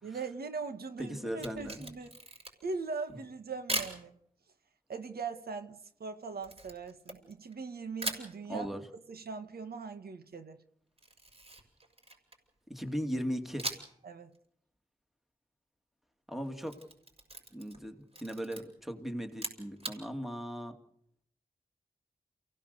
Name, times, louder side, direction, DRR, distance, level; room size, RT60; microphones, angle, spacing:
voice 1, 0.0-2.1 2.6-4.1 4.9-8.7 9.1-10.6 14.0-14.3, right 4 dB, 85° right, 1.6 m, -40 dB
voice 2, 1.0-1.9 8.5-8.8 12.7-13.7 16.3-16.8 17.5-17.9 18.2-20.7, equal, ahead, 2.5 m, -37 dB
Camera, 1.3-2.8 3.7-4.0 6.4-7.6 8.0-8.3 11.0-12.5 13.6-14.0 14.3-14.4 16.4-17.8 18.1-18.6 19.3-20.0, right 2 dB, 40° right, 6.2 m, -39 dB
29.5 x 17.0 x 6.8 m
wide cardioid pair, 135°, 16 cm